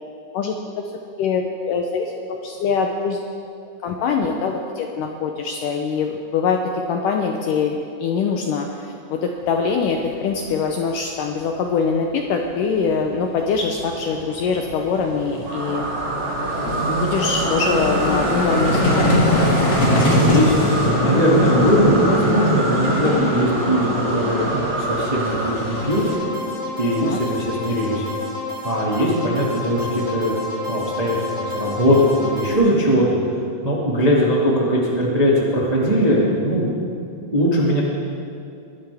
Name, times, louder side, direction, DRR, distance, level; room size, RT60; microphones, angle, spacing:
voice 1, 0.3-0.9 1.2-3.2 3.8-6.6 6.9-15.8 16.9-19.2 20.1-20.2 27.0-27.2, left 5 dB, 80° left, 3 dB, 1.9 m, -23 dB
Vehicle, 10.0-10.1 10.3-10.5 12.5-12.6 12.8-26.2, left 1 dB, 35° left, 2.0 m, -23 dB
sound 1, 15.5-26.2, right 2 dB, 85° right, 5.1 m, -27 dB
voice 2, 19.9-26.0 26.8-28.1 28.6-30.4 30.7-33.2 33.6-37.8, equal, 30° right, -5 dB, 0.6 m, -20 dB
sound 2, 25.7-32.5, left 2 dB, 15° left, 1.6 m, -30 dB
22.0 x 11.5 x 3.5 m, 2.5 s
omnidirectional pair, 4.5 m